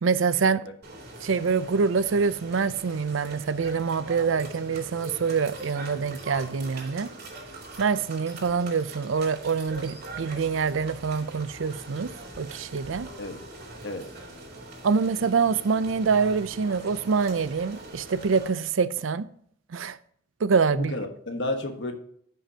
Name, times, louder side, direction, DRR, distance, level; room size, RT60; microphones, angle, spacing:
voice 1, 0.0-0.7 1.2-7.1 7.8-13.1 14.8-19.3 19.7-20.0 20.4-20.9, right 5 dB, 80° right, 0.5 m, -25 dB
sound 1, 0.8-18.5, right 2 dB, 55° right, 2.4 m, -42 dB
voice 2, 20.7-21.9, left 1 dB, 65° left, 1.4 m, -32 dB
15.0 x 5.7 x 2.8 m
head